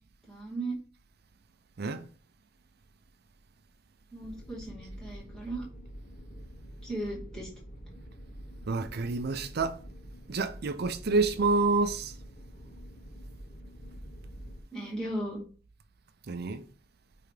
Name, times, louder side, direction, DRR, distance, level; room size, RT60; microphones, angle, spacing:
voice 1, 0.3-0.8 4.1-5.7 6.8-7.5 14.7-15.4, right 1 dB, 5° left, 2.3 m, -36 dB
sound 1, 4.2-14.6, equal, 45° left, 1.6 m, -46 dB
voice 2, 8.7-9.8 10.3-12.1 16.3-16.6, right 3 dB, 55° right, 0.5 m, -28 dB
8.7 x 3.4 x 3.3 m
head